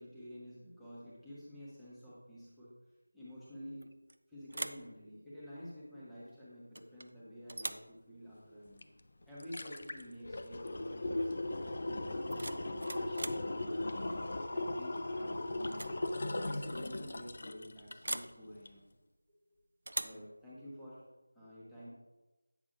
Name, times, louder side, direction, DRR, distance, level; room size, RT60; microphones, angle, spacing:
voice 1, 0.0-2.7 3.1-3.9 4.3-8.8 9.3-14.1 14.5-16.0 16.5-18.8 20.0-21.0 21.3-21.9, equal, ahead, -13 dB, 1.0 m, -50 dB
sound 1, 3.8-4.2 4.5-4.9 6.7-7.1 7.5-7.9 9.8-9.9 10.3-10.6 12.1-13.5 15.0-15.3 15.6-16.0 16.2-16.3 18.0-18.4 19.9-20.3, right 1 dB, 60° right, 0.4 m, -41 dB
sound 2, 8.8-8.9 9.2-18.3 18.7-18.8, left 2 dB, 45° left, 0.4 m, -38 dB
8.5 x 6.0 x 2.5 m, 1.1 s
figure-of-eight pair, 175°, 0 cm